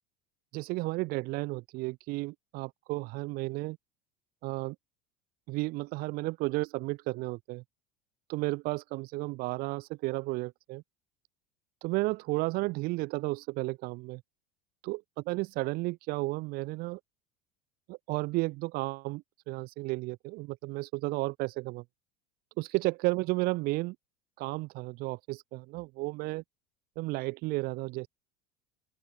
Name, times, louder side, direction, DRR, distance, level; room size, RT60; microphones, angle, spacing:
voice 1, 0.5-3.8 4.4-4.8 5.5-7.6 8.3-10.8 11.8-14.2 14.8-15.0 15.3-17.0 17.9-21.8 22.6-24.0 24.4-26.4 27.0-28.1, right 22 dB, 45° right, 7.7 m, -33 dB
open air
cardioid pair, 175°, 21 cm